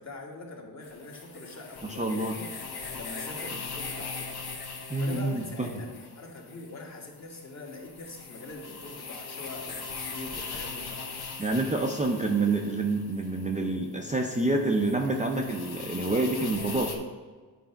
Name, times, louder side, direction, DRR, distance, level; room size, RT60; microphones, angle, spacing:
voice 1, 0.0-2.5 2.9-4.4 4.7-11.2, left 2 dB, 40° left, -1 dB, 1.5 m, -43 dB
sound 1, 0.8-17.0, left 4 dB, 60° left, 1.1 m, -40 dB
voice 2, 1.8-2.3 4.9-5.7 11.4-16.9, right 2 dB, 15° right, 1 dB, 0.5 m, -27 dB
8.9 x 3.4 x 5.6 m, 1.4 s
wide cardioid pair, 125°, 43 cm